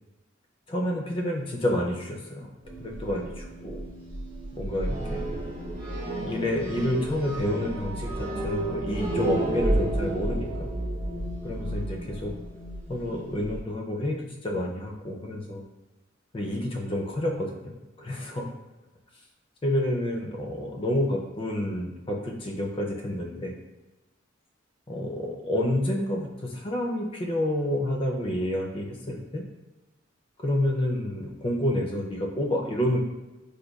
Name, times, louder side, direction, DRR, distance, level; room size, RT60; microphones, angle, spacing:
voice 1, 0.7-2.5 2.8-3.8 4.5-5.3 6.2-10.7 11.4-12.3 12.9-15.6 16.3-18.5 19.6-23.6 24.9-29.4 30.4-33.0, left 1 dB, 30° left, 0 dB, 0.4 m, -29 dB
sound 1, 2.6-13.6, right 1 dB, 50° right, 0.9 m, -31 dB
5.0 x 2.2 x 2.3 m, 1.1 s
head